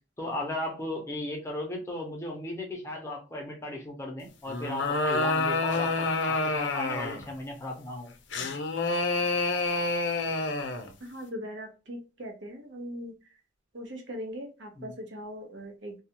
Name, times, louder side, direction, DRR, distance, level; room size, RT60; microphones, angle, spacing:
voice 1, 0.2-8.1 14.7-14.9, left 1 dB, 15° left, 0 dB, 0.7 m, -36 dB
sound 1, 4.5-7.3 8.3-10.9, left 3 dB, 70° left, 0.5 m, -28 dB
voice 2, 11.0-13.1 13.7-16.0, equal, 90° right, 3 dB, 0.9 m, -40 dB
2.3 x 2.3 x 2.9 m, 0.31 s
head